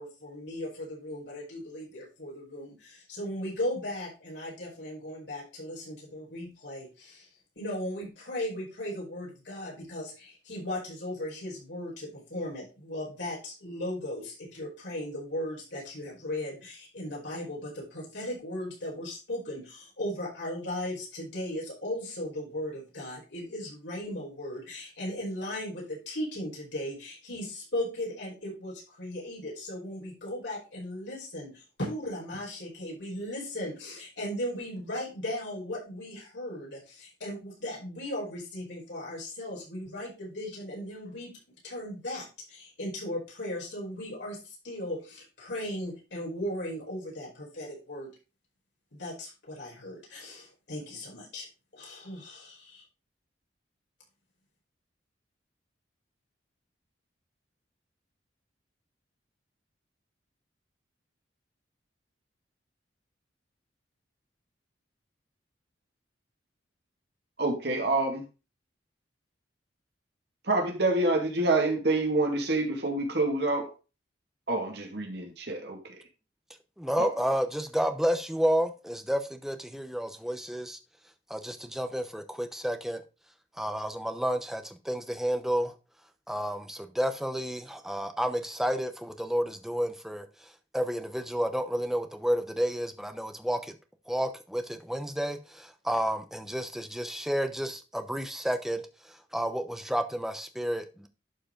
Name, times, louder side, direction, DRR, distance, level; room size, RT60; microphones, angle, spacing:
voice 1, 0.0-7.3 7.5-41.3 41.6-48.1 48.9-51.5 51.7-52.8, left 1 dB, 70° left, 4.9 m, -37 dB
voice 2, 67.4-68.2 70.5-73.7 74.5-75.8 77.0-77.1, right 2 dB, 60° right, 2.2 m, -27 dB
voice 3, 76.8-80.8 81.3-83.0 83.6-85.7 86.3-90.3 90.7-93.7 94.1-98.8 99.3-101.1, equal, ahead, 0.8 m, -30 dB
11.5 x 4.7 x 3.8 m
head